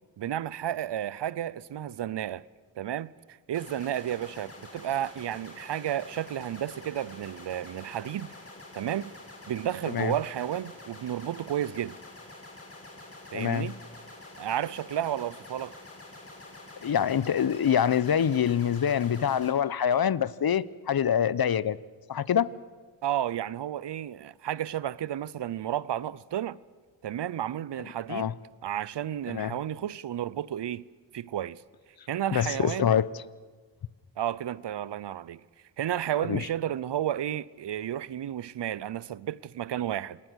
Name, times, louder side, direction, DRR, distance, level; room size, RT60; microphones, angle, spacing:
voice 1, 0.2-2.4 2.8-8.3 8.7-9.1 9.5-12.0 13.3-13.8 14.4-15.7 23.0-26.6 27.0-28.3 28.6-30.8 31.1-31.6 32.1-32.9 34.2-35.4 35.8-40.2, right 11 dB, 60° right, 0.8 m, -32 dB
sound 1, 3.5-19.5, left 2 dB, 30° left, 5.6 m, -47 dB
voice 2, 13.3-13.7 16.8-21.8 22.1-22.5 28.1-28.3 29.3-29.5 32.3-33.2 36.2-36.5, left 8 dB, 50° left, 0.9 m, -25 dB
27.5 x 19.5 x 6.4 m
cardioid pair, 50°, 47 cm